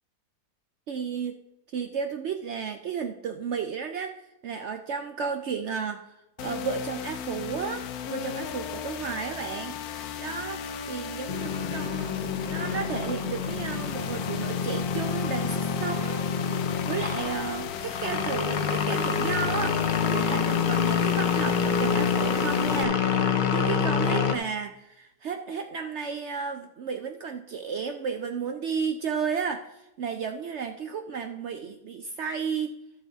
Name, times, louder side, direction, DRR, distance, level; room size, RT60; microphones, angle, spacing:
voice 1, 0.9-1.4 1.7-4.1 4.4-9.8 10.2-12.1 12.4-23.2 23.5-32.7, right 6 dB, 70° right, 6 dB, 0.6 m, -33 dB
sound 1, 6.4-22.8, left 8 dB, 70° left, 1.1 m, -36 dB
sound 2, 11.3-24.3, left 6 dB, 90° left, 0.4 m, -27 dB
12.5 x 6.5 x 4.0 m, 0.87 s
omnidirectional pair, 1.8 m